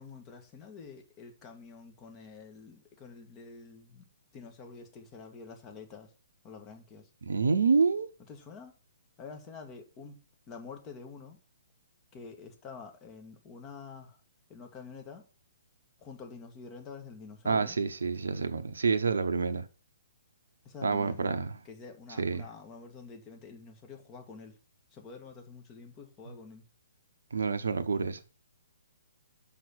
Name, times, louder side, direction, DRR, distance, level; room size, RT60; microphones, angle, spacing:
voice 1, 0.0-4.1 4.3-6.1 6.4-7.1 8.3-8.7 9.2-10.2 10.5-11.4 12.1-14.2 14.5-15.3 16.0-17.8 20.6-21.3 21.6-24.6 24.9-26.7, left 5 dB, 25° left, 1.8 m, -47 dB
voice 2, 7.3-8.1 17.4-19.7 20.8-21.5 22.2-22.4 27.3-28.2, right 5 dB, 70° right, 0.8 m, -28 dB
6.2 x 5.7 x 6.4 m
figure-of-eight pair, 125°, 0 cm